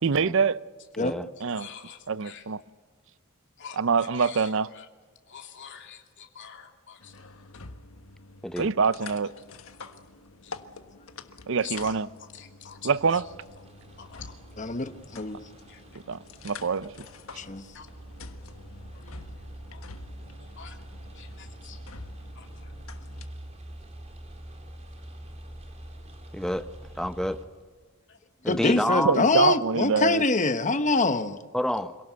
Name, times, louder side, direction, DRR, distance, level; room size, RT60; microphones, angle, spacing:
voice 1, 0.0-0.6 1.4-1.7 2.1-2.6 3.8-4.7 8.6-9.3 11.5-12.1 12.8-13.2 16.1-16.2 16.4-17.1 29.0-30.2, right 5 dB, 65° right, 0.6 m, -25 dB
voice 2, 1.6-2.5 3.6-4.9 5.3-7.1 10.4-10.6 11.6-12.0 12.3-13.2 14.0-14.3 15.7-15.8 17.7-17.9 19.7-19.8 20.4-20.8 21.2-21.8 22.4-22.7 28.1-28.2, left 8 dB, 60° left, 2.8 m, -45 dB
sound 1, 7.0-23.3, left 3 dB, 80° left, 1.4 m, -47 dB
sound 2, 12.8-27.4, right 1 dB, 30° right, 3.8 m, -45 dB
voice 3, 14.6-15.4 17.4-17.6 28.5-31.4, left 3 dB, 35° left, 1.1 m, -25 dB
voice 4, 26.3-26.6 27.0-27.4 28.4-29.2 31.5-32.0, equal, 5° left, 0.8 m, -28 dB
26.5 x 18.0 x 8.1 m
head